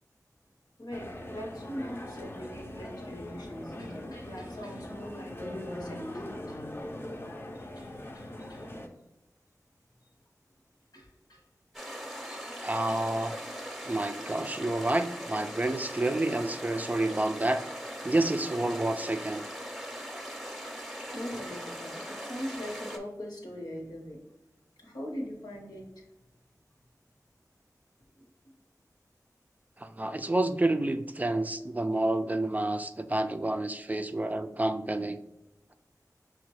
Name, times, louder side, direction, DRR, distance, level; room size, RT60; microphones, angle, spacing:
voice 1, 0.8-6.6 7.8-8.7 10.9-11.4 12.2-13.0 21.1-24.2 24.8-26.1 28.2-28.3 31.9-32.0, equal, 85° left, 0 dB, 0.9 m, -42 dB
sound 1, 0.9-8.9, left 1 dB, 35° left, 0.6 m, -41 dB
sound 2, 11.7-23.0, equal, ahead, 0.7 m, -40 dB
voice 2, 12.6-13.4 13.9-17.6 18.0-19.5 29.8-35.2, right 2 dB, 25° right, 8 dB, 0.3 m, -29 dB
5.9 x 2.2 x 3.0 m, 0.95 s
cardioid pair, 40°, 7 cm